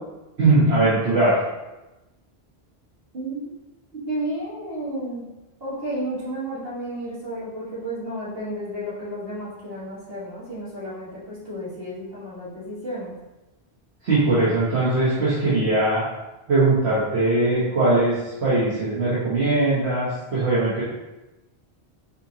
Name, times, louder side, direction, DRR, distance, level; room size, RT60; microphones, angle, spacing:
voice 1, 0.4-1.4 14.0-16.0 16.5-20.8, right 2 dB, 80° right, -11 dB, 1.5 m, -20 dB
voice 2, 3.9-5.2 5.6-13.1, right 1 dB, 65° right, -9 dB, 1.9 m, -32 dB
4.4 x 4.1 x 2.8 m, 1.0 s
omnidirectional pair, 1.1 m